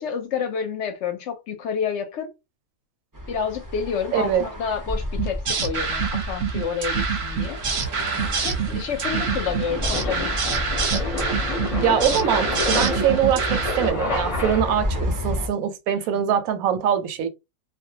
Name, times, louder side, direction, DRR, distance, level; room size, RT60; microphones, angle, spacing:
voice 1, 0.0-2.3 3.3-7.6 8.4-10.9 16.1-16.3, left 6 dB, 65° left, 0.8 m, -29 dB
sound 1, 3.1-15.5, left 1 dB, 30° right, 0.3 m, -32 dB
voice 2, 4.1-4.4 11.8-17.3, right 9 dB, 85° right, 1.0 m, -23 dB
sound 2, 5.2-13.9, right 5 dB, 60° right, 0.8 m, -26 dB
sound 3, 7.4-15.0, left 3 dB, 35° left, 0.6 m, -30 dB
2.4 x 2.1 x 2.7 m
omnidirectional pair, 1.4 m